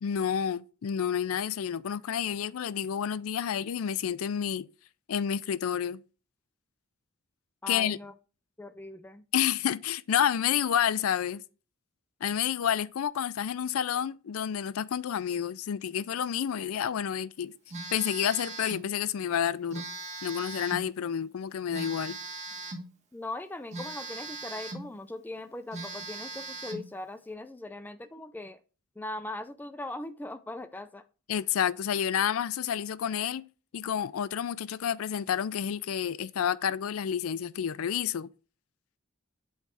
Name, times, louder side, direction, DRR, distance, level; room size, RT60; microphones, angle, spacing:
voice 1, 0.0-4.7 5.1-6.0 7.7-8.0 9.3-11.4 12.2-17.5 17.9-19.9 20.2-22.2 31.3-33.5 33.7-38.3, left 9 dB, 80° left, 0.4 m, -29 dB
voice 2, 7.6-8.1 8.6-9.2 23.1-28.6 29.0-31.0, left 2 dB, 10° left, 0.3 m, -40 dB
Telephone, 17.7-18.9 19.7-20.9 21.7-22.9 23.7-24.9 25.3-25.4 25.7-26.9, right 2 dB, 35° right, 1.4 m, -39 dB
8.1 x 3.1 x 5.7 m
head